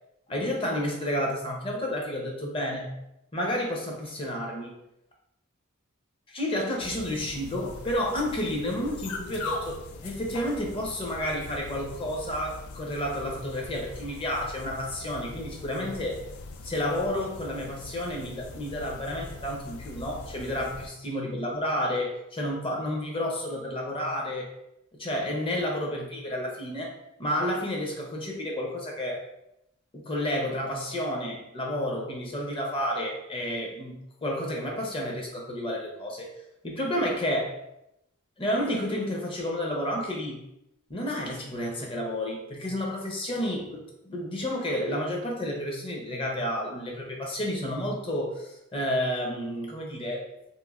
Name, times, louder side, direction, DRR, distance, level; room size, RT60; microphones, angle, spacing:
voice 1, 0.3-2.9 3.3-4.8 6.3-16.2 16.6-24.5 24.9-26.9 27.2-29.3 29.9-36.3 36.6-37.6 38.4-40.4 40.9-50.5, left 1 dB, 25° left, -1 dB, 0.5 m, -31 dB
sound 1, 6.8-20.9, left 3 dB, 85° left, 0.3 m, -41 dB
3.0 x 2.5 x 2.4 m, 0.83 s
head